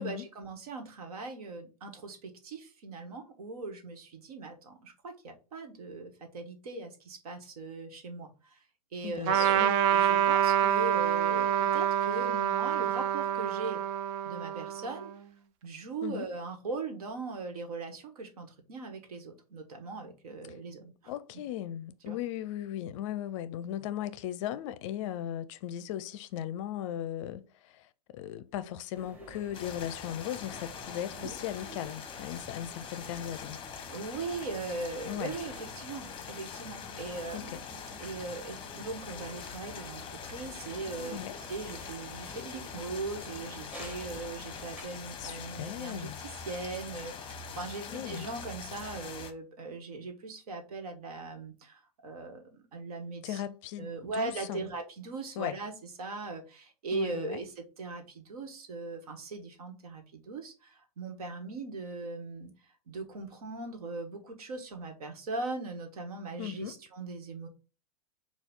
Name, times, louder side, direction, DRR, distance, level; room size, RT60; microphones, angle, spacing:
voice 1, 0.0-8.6 8.9-13.8 14.2-15.1 15.6-21.1 22.1-22.2 31.2-31.4 33.9-37.7 38.0-53.4 53.8-62.5 62.9-67.5, right 3 dB, 70° right, 1.3 m, -40 dB
voice 2, 9.0-9.8 16.0-16.3 21.1-33.6 35.1-35.3 37.3-37.6 41.1-41.4 45.2-46.2 47.9-48.3 53.2-54.7 55.4-55.6 56.9-57.4 66.4-66.7, left 11 dB, 50° left, 0.5 m, -37 dB
Trumpet, 9.3-15.1, right 10 dB, 50° right, 0.5 m, -27 dB
sound 1, 28.9-44.8, equal, 10° right, 1.5 m, -51 dB
sound 2, 29.5-49.3, left 6 dB, 25° left, 0.8 m, -43 dB
5.8 x 2.4 x 3.7 m
hypercardioid pair, 115°, 20 cm